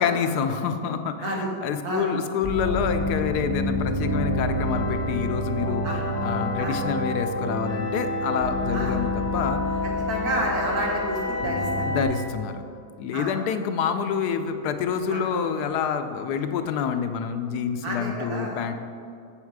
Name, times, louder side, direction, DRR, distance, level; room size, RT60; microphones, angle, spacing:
voice 1, 0.0-5.8 6.2-9.6 10.1-10.3 11.8-12.6 13.0-18.8, left 7 dB, 90° left, 8 dB, 1.2 m, -27 dB
sound 1, 2.4-12.0, left 1 dB, 35° left, 2.5 m, -27 dB
voice 2, 10.1-11.7 13.1-13.3 15.1-15.2 17.8-18.6, right 1 dB, 70° right, -2 dB, 2.0 m, -29 dB
7.4 x 7.1 x 4.7 m, 2.4 s
omnidirectional pair, 1.7 m